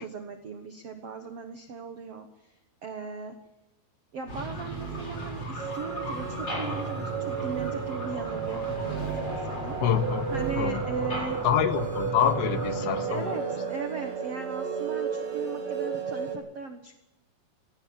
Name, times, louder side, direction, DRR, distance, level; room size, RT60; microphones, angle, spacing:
voice 1, 0.0-3.3 4.1-9.8 10.3-11.4 13.1-17.0, right 4 dB, 75° right, 5 dB, 1.4 m, -38 dB
sound 1, 4.3-13.0, right 1 dB, 25° left, 4.9 m, -36 dB
sound 2, 4.3-5.3 6.0-6.4 7.4-7.8 8.7-9.4 10.1-10.8, right 14 dB, 90° right, 3.1 m, -40 dB
sound 3, 5.6-16.3, right 6 dB, 30° right, 4.3 m, -33 dB
voice 2, 9.8-10.8 11.4-13.4, left 9 dB, 90° left, 10 dB, 3.3 m, -27 dB
18.0 x 15.0 x 9.5 m, 0.96 s
omnidirectional pair, 5.0 m